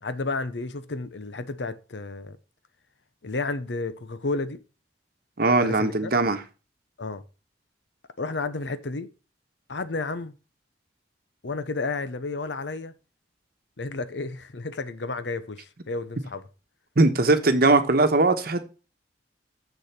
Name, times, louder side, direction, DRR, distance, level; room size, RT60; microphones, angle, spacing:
voice 1, 0.0-2.4 3.2-4.6 5.6-6.1 7.0-7.2 8.2-9.1 9.7-10.3 11.4-12.9 13.8-16.4, left 3 dB, 75° left, 0.8 m, -32 dB
voice 2, 5.4-6.4 17.0-18.7, right 2 dB, 55° right, 1.1 m, -20 dB
7.0 x 6.6 x 5.9 m
head